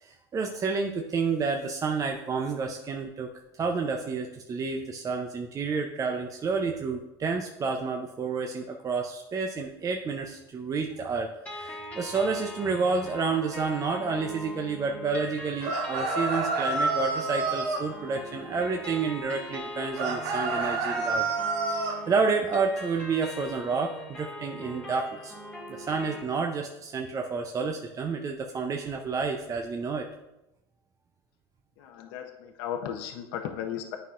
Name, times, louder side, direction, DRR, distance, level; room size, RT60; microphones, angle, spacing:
voice 1, 0.0-21.3 21.7-25.3 25.7-30.1, right 4 dB, 25° right, 3 dB, 0.5 m, -30 dB
sound 1, 11.5-26.2, left 1 dB, 10° left, 1.7 m, -41 dB
sound 2, 15.6-17.9 20.0-22.0, right 3 dB, 75° right, 1.3 m, -28 dB
voice 2, 31.8-34.0, left 9 dB, 70° left, 4 dB, 0.7 m, -35 dB
9.1 x 5.5 x 2.5 m, 0.94 s
hypercardioid pair, 95°, 13 cm